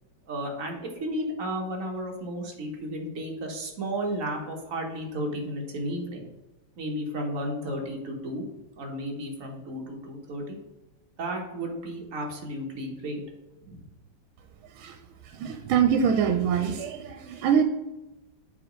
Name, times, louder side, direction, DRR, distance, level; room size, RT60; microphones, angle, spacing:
voice 1, 0.3-6.3 6.8-8.5 8.8-10.6 11.2-13.2 13.6-13.8, right 1 dB, 45° right, 1 dB, 1.4 m, -33 dB
voice 2, 14.6-15.0 15.2-17.6, right 7 dB, 90° right, 7 dB, 1.4 m, -24 dB
6.9 x 3.7 x 5.0 m, 1.0 s
omnidirectional pair, 2.2 m